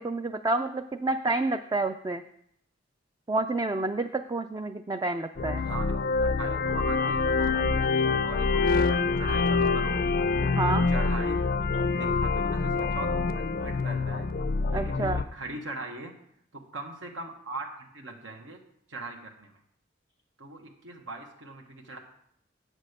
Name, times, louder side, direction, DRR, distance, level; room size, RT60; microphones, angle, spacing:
voice 1, 0.0-2.2 3.3-5.7 10.4-10.9 14.7-15.2, right 2 dB, 20° right, 7 dB, 0.3 m, -29 dB
sound 1, 5.4-15.2, left 4 dB, 50° left, 0.4 m, -26 dB
voice 2, 5.6-5.9 6.2-10.2 10.7-11.4 11.9-13.1 13.5-14.3 14.7-16.1 16.5-18.6 18.9-19.5 20.4-22.0, right 2 dB, 75° right, 3 dB, 1.2 m, -40 dB
8.2 x 6.3 x 6.5 m, 0.71 s
head